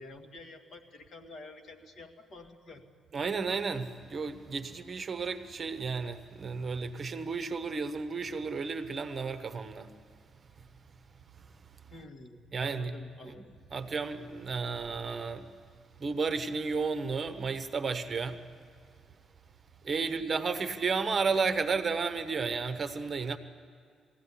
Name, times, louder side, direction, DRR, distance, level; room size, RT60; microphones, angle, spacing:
voice 1, 0.0-2.9 11.9-13.6 20.0-20.3, left 2 dB, 50° left, 2.0 m, -49 dB
voice 2, 3.1-9.9 12.5-12.9 13.3-13.4 13.7-15.5 16.0-18.4 19.8-23.4, right 4 dB, 35° right, 1.1 m, -32 dB
21.5 x 16.0 x 10.0 m
cardioid pair, 120°, 0 cm